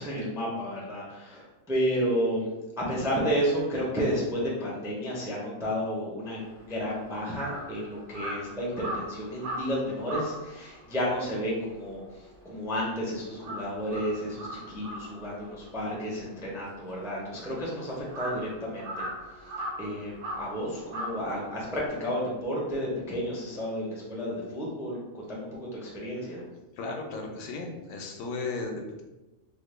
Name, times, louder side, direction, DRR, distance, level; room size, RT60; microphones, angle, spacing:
voice 1, 0.0-2.5 2.8-26.4, equal, 5° right, -4 dB, 0.3 m, -32 dB
Crow, 6.4-13.0 13.3-21.9, equal, 65° right, 1.0 m, -39 dB
voice 2, 26.8-29.0, left 3 dB, 80° left, 1 dB, 1.0 m, -35 dB
3.1 x 2.1 x 3.2 m, 1.1 s
omnidirectional pair, 1.4 m